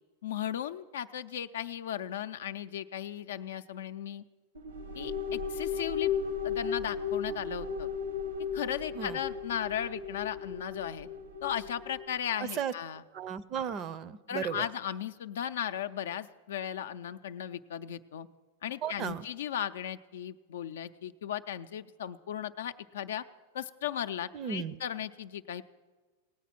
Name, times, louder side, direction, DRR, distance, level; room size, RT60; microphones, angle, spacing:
voice 1, 0.2-4.2 4.9-6.1 6.4-7.9 8.5-11.1 11.4-13.0 14.3-18.3 18.6-23.2 23.5-25.6, left 10 dB, 70° left, 11 dB, 0.5 m, -36 dB
sound 1, 4.5-12.1, left 6 dB, 85° right, 1.4 m, -35 dB
voice 2, 12.4-12.7 13.1-14.7 18.8-19.3 24.3-24.8, right 7 dB, 40° right, 18 dB, 0.6 m, -35 dB
18.0 x 8.4 x 5.9 m, 1.4 s
hypercardioid pair, 100°, 0 cm